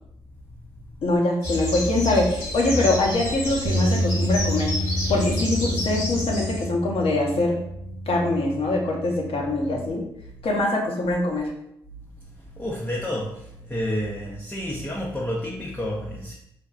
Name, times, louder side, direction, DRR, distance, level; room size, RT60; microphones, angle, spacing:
voice 1, 1.0-4.7 5.1-7.6 8.1-10.0 10.4-11.5, left 2 dB, 60° left, -1 dB, 0.8 m, -23 dB
sound 1, 1.4-6.7, left 1 dB, 80° left, 1.1 m, -29 dB
sound 2, 3.7-9.9, right 1 dB, 40° right, 0.4 m, -29 dB
voice 2, 12.5-16.3, equal, 10° left, -3 dB, 0.6 m, -30 dB
3.4 x 2.1 x 2.4 m, 0.77 s
supercardioid pair, 45°, 11 cm